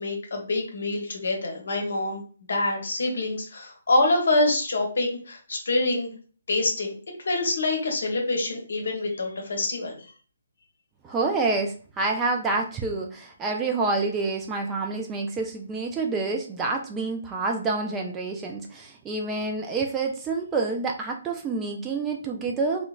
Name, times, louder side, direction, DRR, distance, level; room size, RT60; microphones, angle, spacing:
voice 1, 0.0-2.2 2.5-6.1 6.5-6.9 7.2-10.1, left 2 dB, 60° left, 2 dB, 0.8 m, -26 dB
voice 2, 11.0-22.8, right 3 dB, 15° right, 1 dB, 0.3 m, -28 dB
2.8 x 2.1 x 2.3 m, 0.41 s
figure-of-eight pair, 135°, 0 cm